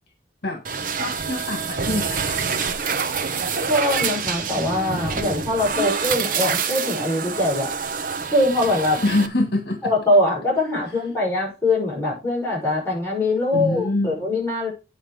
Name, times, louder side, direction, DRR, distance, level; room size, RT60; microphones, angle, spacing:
sound 1, 0.6-9.3, right 5 dB, 50° right, 0.8 m, -26 dB
voice 1, 0.9-2.4 9.0-9.9 13.5-14.3, left 2 dB, 60° left, 4 dB, 1.7 m, -25 dB
voice 2, 3.7-7.7 8.3-9.0 9.8-14.7, left 1 dB, 15° left, -4 dB, 6.0 m, -22 dB
9.0 x 5.5 x 4.9 m, 0.28 s
head